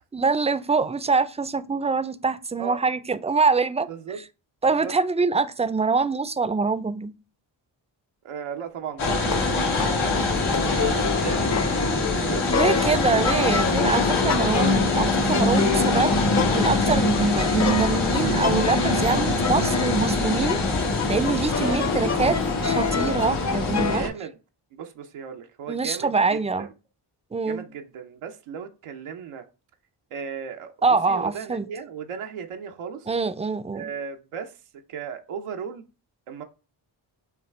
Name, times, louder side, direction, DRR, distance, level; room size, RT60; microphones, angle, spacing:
voice 1, 0.1-3.9 4.6-7.1 12.5-16.1 16.5-20.6 21.1-22.4 22.6-24.0 25.7-26.7 27.3-27.6 30.8-31.7 33.1-33.9, right 4 dB, 15° right, 0.4 m, -24 dB
voice 2, 3.9-4.2 4.7-4.9 8.2-12.6 21.6-21.8 23.9-24.4 24.7-26.7 27.5-29.5 30.1-33.1 33.7-34.6 34.9-35.9 36.3-36.4, right 7 dB, 90° right, 0.7 m, -36 dB
Bowed string instrument, 8.8-12.4, left 5 dB, 75° left, 1.0 m, -37 dB
sound 1, 9.0-24.1, left 2 dB, 90° left, 1.4 m, -24 dB
sound 2, 9.0-24.0, left 5 dB, 35° left, 0.6 m, -28 dB
5.7 x 2.3 x 3.3 m
cardioid pair, 50°, 49 cm